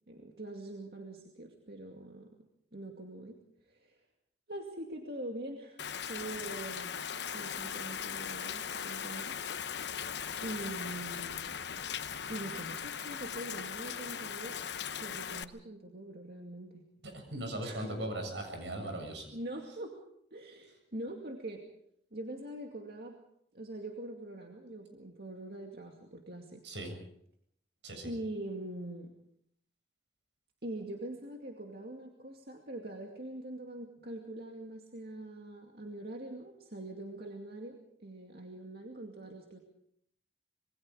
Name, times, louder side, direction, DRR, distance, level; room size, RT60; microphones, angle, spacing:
voice 1, 0.1-2.3 2.7-3.4 3.7-4.0 4.5-5.8 6.1-7.0 7.3-9.3 10.4-11.4 11.8-14.5 15.0-16.9 17.6-18.0 19.3-20.0 20.3-21.6 22.1-23.1 23.5-26.6 28.0-29.1 30.6-37.8 38.0-39.6, right 1 dB, 60° right, 1 dB, 2.4 m, -43 dB
Rain, 5.8-15.4, left 7 dB, 75° left, 0.9 m, -39 dB
voice 2, 17.1-19.3 26.6-26.9 27.8-28.1, right 1 dB, 85° right, 4 dB, 7.4 m, -38 dB
27.0 x 22.0 x 5.1 m, 0.71 s
head